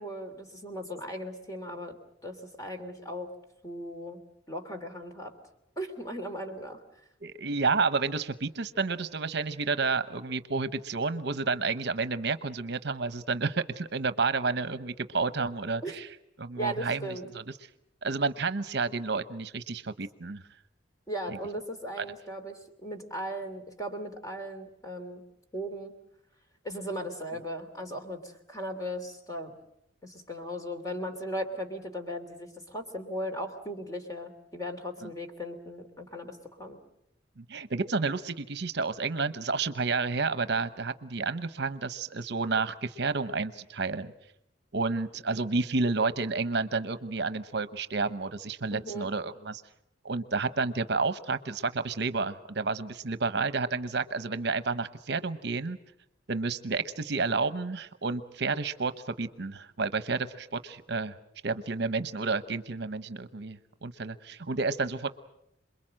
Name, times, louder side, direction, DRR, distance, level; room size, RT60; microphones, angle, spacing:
voice 1, 0.0-2.0 2.2-3.3 3.6-4.2 4.5-5.3 5.8-6.8 15.8-15.9 16.6-17.2 21.1-25.2 25.5-25.9 26.6-29.6 30.0-36.8 48.7-49.1, equal, 20° left, 5 dB, 2.9 m, -37 dB
voice 2, 7.2-16.1 16.4-17.4 18.0-20.4 21.3-21.4 22.0-22.1 35.0-35.1 37.4-44.1 44.7-49.6 50.0-55.8 56.3-58.9 59.2-61.1 61.4-65.1, right 4 dB, 60° right, 12 dB, 0.9 m, -30 dB
27.5 x 22.0 x 7.6 m, 0.78 s
head